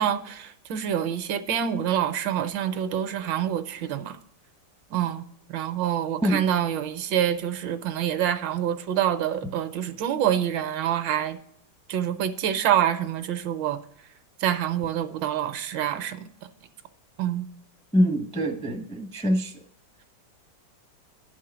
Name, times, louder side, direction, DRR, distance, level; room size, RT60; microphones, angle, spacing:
voice 1, 0.0-4.2 4.9-5.2 5.5-11.4 11.9-13.8 14.4-16.2 17.2-17.5, right 10 dB, 75° right, 9 dB, 1.4 m, -26 dB
voice 2, 17.9-19.5, equal, 10° left, 4 dB, 0.3 m, -24 dB
11.0 x 4.6 x 6.0 m, 0.74 s
omnidirectional pair, 2.1 m